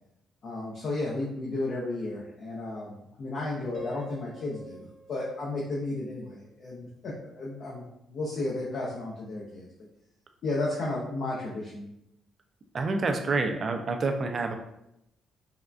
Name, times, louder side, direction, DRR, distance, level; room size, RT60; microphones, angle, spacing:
voice 1, 0.4-9.9 10.4-11.9, left 2 dB, 60° left, -5 dB, 0.5 m, -33 dB
Piano, 3.7-6.8, right 2 dB, 25° right, 0.8 m, -48 dB
voice 2, 12.7-14.5, right 3 dB, 45° right, 5 dB, 0.4 m, -28 dB
3.5 x 2.2 x 2.4 m, 0.82 s
cardioid pair, 90°, 0 cm